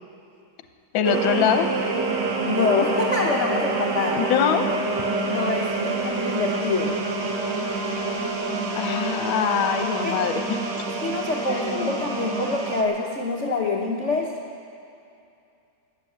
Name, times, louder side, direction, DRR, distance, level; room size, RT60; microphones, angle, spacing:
voice 1, 0.9-1.7 4.1-4.7 8.7-10.8 11.5-11.9, left 8 dB, 70° left, 8 dB, 1.5 m, -24 dB
sound 1, 1.0-12.8, right 3 dB, 60° right, 1.7 m, -27 dB
voice 2, 2.4-4.3 5.3-7.0 10.0-10.2 11.0-14.3, left 3 dB, 50° left, -2 dB, 0.9 m, -26 dB
13.5 x 10.0 x 8.5 m, 2.5 s
omnidirectional pair, 2.4 m